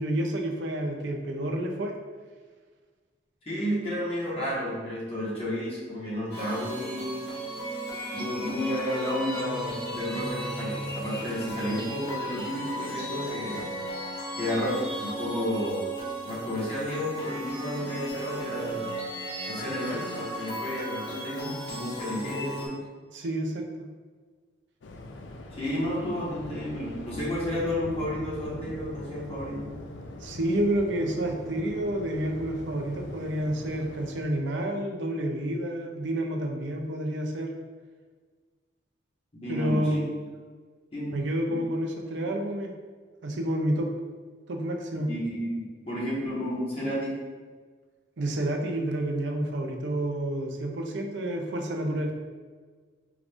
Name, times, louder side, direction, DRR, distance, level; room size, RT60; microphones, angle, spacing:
voice 1, 0.0-1.9 23.1-23.9 30.2-37.5 39.5-40.1 41.1-42.7 43.2-43.9 44.5-45.1 48.2-52.1, right 1 dB, 80° right, 2 dB, 0.5 m, -29 dB
voice 2, 3.5-7.3 8.1-13.7 14.4-15.9 16.2-18.9 19.5-22.8 25.5-29.7 39.4-40.0 40.9-41.6 45.1-47.2, equal, 30° left, -7 dB, 1.1 m, -32 dB
sound 1, 6.3-22.7, right 1 dB, 60° left, 1.4 m, -35 dB
Waves surf, 24.8-34.5, left 2 dB, 85° left, 0.4 m, -42 dB
4.7 x 2.5 x 3.4 m, 1.5 s
head